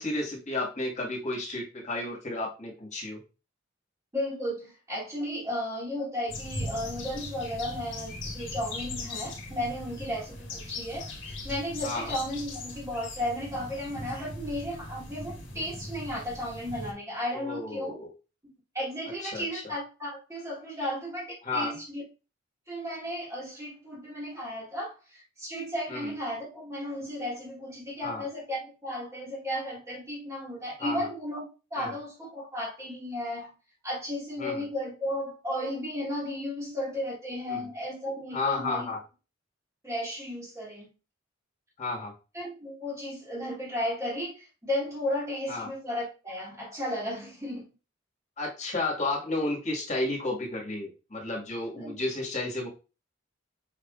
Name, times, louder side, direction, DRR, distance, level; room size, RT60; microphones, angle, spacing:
voice 1, 0.0-3.2 11.8-12.1 17.3-18.1 19.2-19.6 21.4-21.8 25.9-26.1 28.0-28.2 30.8-31.0 31.8-31.9 34.4-34.6 37.5-37.6 38.3-39.0 41.8-42.1 45.5-45.7 48.4-52.7, left 2 dB, 40° left, 1.6 m, -32 dB
voice 2, 4.1-18.0 18.7-22.0 22.7-33.5 33.8-38.9 39.8-40.9 42.3-47.6 51.7-51.9, left 1 dB, 15° right, 1.5 m, -34 dB
sound 1, 6.3-16.9, left 2 dB, 70° left, 1.3 m, -39 dB
5.6 x 3.5 x 2.4 m
head